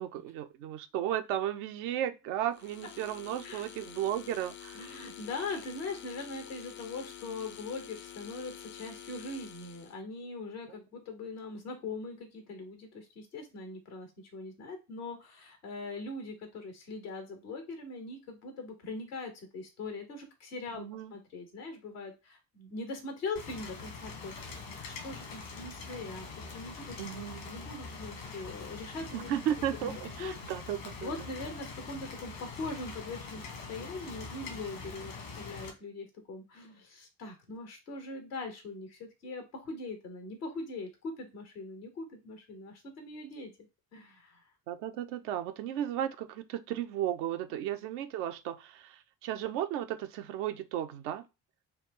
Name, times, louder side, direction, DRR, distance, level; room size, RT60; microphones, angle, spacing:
voice 1, 0.0-4.9 20.8-21.1 27.0-27.5 29.1-31.1 44.7-51.3, right 11 dB, 80° right, 0.6 m, -34 dB
sound 1, 2.5-10.0, left 10 dB, 30° left, 0.4 m, -48 dB
voice 2, 4.7-20.8 21.1-26.3 26.5-27.0 27.4-29.3 29.8-30.3 31.0-43.5 43.9-44.4, left 3 dB, 85° left, 1.2 m, -41 dB
Rain, 23.4-35.7, left 4 dB, 70° left, 1.5 m, -44 dB
4.2 x 2.3 x 3.6 m
hypercardioid pair, 40°, 45 cm